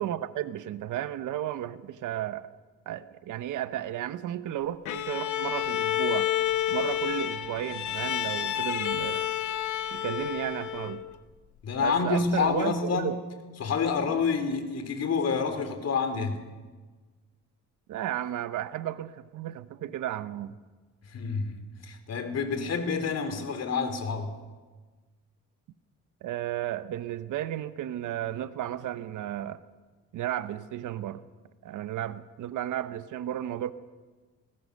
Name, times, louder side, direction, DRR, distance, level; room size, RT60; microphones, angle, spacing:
voice 1, 0.0-2.5 2.9-6.3 6.7-9.3 9.9-11.0 11.8-13.2 17.9-20.6 26.2-29.6 30.1-31.2 31.6-33.7, right 12 dB, 80° right, 1.1 m, -33 dB
Bowed string instrument, 4.8-11.1, left 12 dB, 75° left, 1.1 m, -30 dB
voice 2, 11.6-13.2 13.6-16.4 21.1-24.3, left 5 dB, 55° left, 3.5 m, -28 dB
21.0 x 20.5 x 6.5 m
cardioid pair, 90°, 30 cm